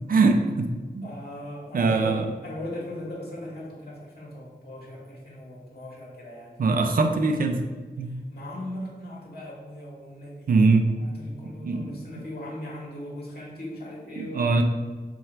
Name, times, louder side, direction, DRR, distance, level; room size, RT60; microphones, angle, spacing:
voice 1, 0.1-1.1 1.7-2.3 6.6-7.6 8.0-8.1 10.5-10.9 11.6-11.9 14.2-14.6, right 3 dB, 55° right, 5 dB, 0.4 m, -22 dB
voice 2, 1.0-6.6 8.0-14.6, left 1 dB, 65° left, -5 dB, 1.0 m, -39 dB
3.3 x 2.3 x 4.4 m, 1.4 s
wide cardioid pair, 90°, 18 cm